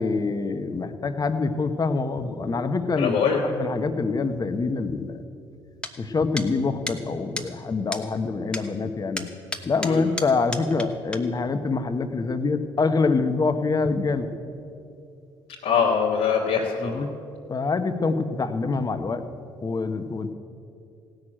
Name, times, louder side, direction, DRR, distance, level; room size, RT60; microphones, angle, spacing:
voice 1, 0.0-5.2 6.0-9.3 9.6-14.3 16.8-17.1 17.5-19.2 19.6-20.3, left 4 dB, 35° left, 9 dB, 1.1 m, -25 dB
voice 2, 2.9-3.4 9.8-10.0 15.6-17.0, left 6 dB, 75° left, -5 dB, 1.6 m, -23 dB
sound 1, 5.8-5.9 6.4-6.5 6.9-7.0 7.4-7.5 7.9-8.0 8.5-8.6 9.2-10.9 11.1-11.2, left 1 dB, 10° left, 1.2 m, -32 dB
16.0 x 6.5 x 8.8 m, 2.6 s
hypercardioid pair, 55°, 11 cm